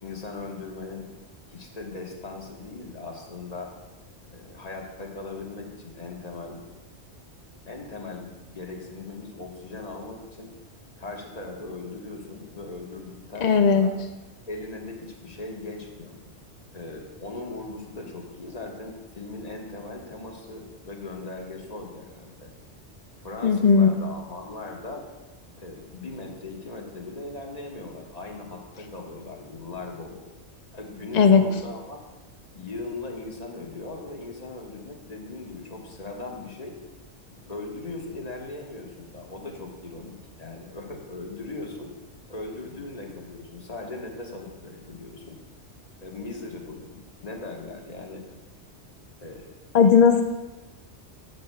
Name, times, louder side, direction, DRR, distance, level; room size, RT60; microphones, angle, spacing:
voice 1, 0.0-1.1 1.5-3.7 4.2-6.6 7.7-10.5 11.0-13.9 14.5-16.2 16.7-22.5 23.2-25.0 25.6-30.2 30.7-32.0 32.5-36.8 37.3-42.0 42.3-45.4 46.0-48.2 49.2-49.6, left 3 dB, 35° left, 0 dB, 1.3 m, -39 dB
voice 2, 13.4-13.9 23.4-23.9 31.1-31.4 49.7-50.2, left 6 dB, 60° left, 6 dB, 0.4 m, -16 dB
14.0 x 7.7 x 2.2 m, 1.1 s
omnidirectional pair, 1.2 m